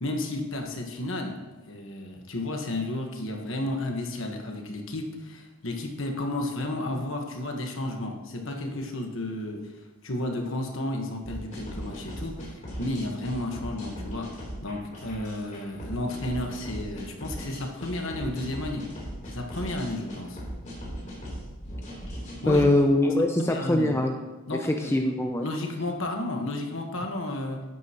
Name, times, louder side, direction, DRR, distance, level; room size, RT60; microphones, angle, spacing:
voice 1, 0.0-1.3 1.7-9.7 10.0-18.9 19.2-20.4 22.4-22.7 23.4-23.9 24.5-25.0 25.4-27.6, left 1 dB, 60° left, 3 dB, 1.3 m, -32 dB
sound 1, 11.2-22.6, equal, 35° left, 3.2 m, -38 dB
voice 2, 22.5-24.2 24.6-25.5, left 1 dB, 10° left, 3 dB, 0.4 m, -22 dB
11.5 x 9.5 x 2.9 m, 1.2 s
head